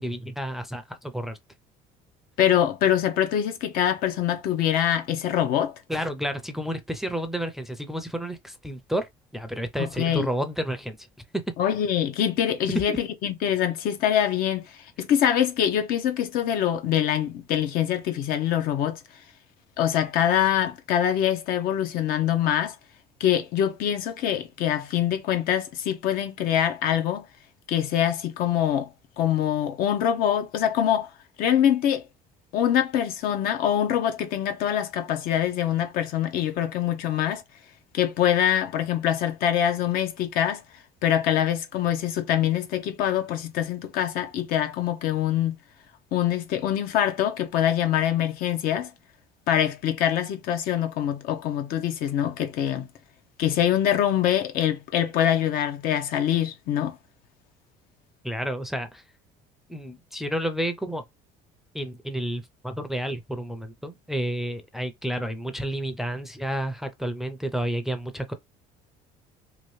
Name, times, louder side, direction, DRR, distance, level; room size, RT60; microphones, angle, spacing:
voice 1, 0.0-1.4 5.9-11.1 11.3-11.4 12.9-13.0 58.2-59.0 59.7-61.0 61.7-68.3, right 1 dB, ahead, 0.5 m, -30 dB
voice 2, 2.4-5.7 9.8-10.3 11.6-19.0 19.8-22.8 23.2-27.3 27.7-28.9 29.2-31.1 31.4-32.0 32.5-37.4 37.9-40.6 41.0-45.6 46.1-48.9 49.5-52.9 53.4-57.0, left 10 dB, 65° left, 0.8 m, -24 dB
2.9 x 2.5 x 3.1 m
cardioid pair, 120°, 16 cm